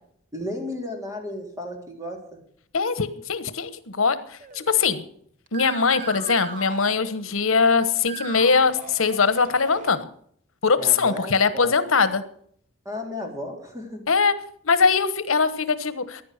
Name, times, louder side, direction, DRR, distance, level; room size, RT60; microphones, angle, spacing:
voice 1, 0.3-2.4 10.8-11.7 12.8-14.0, left 1 dB, 15° right, 2 dB, 3.4 m, -34 dB
voice 2, 2.7-5.0 5.5-10.1 10.6-12.2 14.1-14.3 14.6-16.2, left 5 dB, 85° left, 13 dB, 1.2 m, -21 dB
sound 1, 4.4-5.1 5.5-7.6 8.0-9.9, right 5 dB, 40° right, 1.0 m, -39 dB
15.5 x 10.5 x 6.7 m, 0.63 s
head